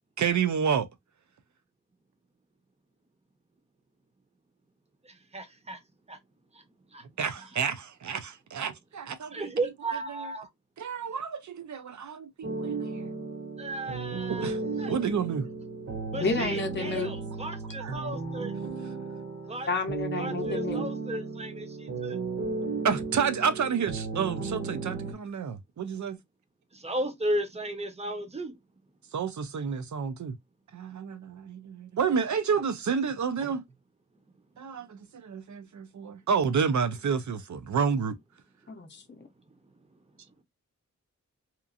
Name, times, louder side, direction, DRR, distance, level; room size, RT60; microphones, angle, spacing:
voice 1, 0.2-0.9 7.2-9.5 10.1-10.3 10.8-13.1 14.3-14.6 14.9-15.5 17.8-18.0 22.8-26.2 29.1-30.3 30.8-33.6 34.6-38.1, right 6 dB, 70° right, 0.5 m, -30 dB
voice 2, 5.0-5.8 6.1-6.2 6.5-6.6 6.9-7.0 7.4-7.5 9.3-10.5 13.6-14.5 14.8-15.0 16.1-18.5 19.5-19.7 20.2-22.2 26.7-28.6 33.4-33.6, right 1 dB, 20° right, 0.7 m, -35 dB
sound 1, 12.4-25.1, right 4 dB, 50° right, 0.9 m, -35 dB
voice 3, 16.2-17.1 19.7-20.9 38.7-39.3, left 3 dB, 35° left, 0.6 m, -31 dB
2.9 x 2.4 x 2.4 m
wide cardioid pair, 115°, 30 cm